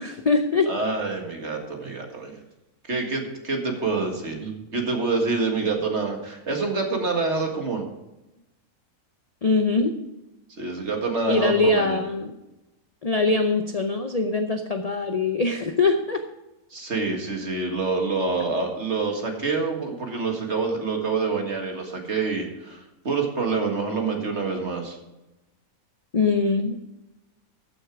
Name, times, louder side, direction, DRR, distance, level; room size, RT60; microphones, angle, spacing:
voice 1, 0.0-0.7 9.4-10.0 11.3-12.4 13.0-16.2 26.1-26.9, left 3 dB, 40° left, 6 dB, 0.6 m, -22 dB
voice 2, 0.7-2.4 2.9-7.9 10.6-12.0 16.7-25.0, right 4 dB, 50° right, 2 dB, 2.2 m, -27 dB
14.0 x 6.6 x 4.8 m, 0.97 s
omnidirectional pair, 1.5 m